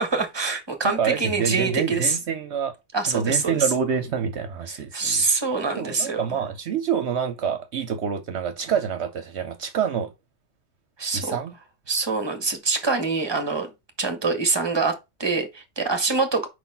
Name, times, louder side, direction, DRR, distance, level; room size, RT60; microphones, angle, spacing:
voice 1, 0.0-2.2 2.9-3.6 4.9-6.2 11.0-11.4 11.9-13.7 14.0-16.5, right 4 dB, 20° right, 1.2 m, -25 dB
voice 2, 0.8-2.7 3.1-5.2 5.8-10.1 11.1-11.5, right 7 dB, 65° right, 1.0 m, -27 dB
4.9 x 4.2 x 5.4 m
omnidirectional pair, 1.3 m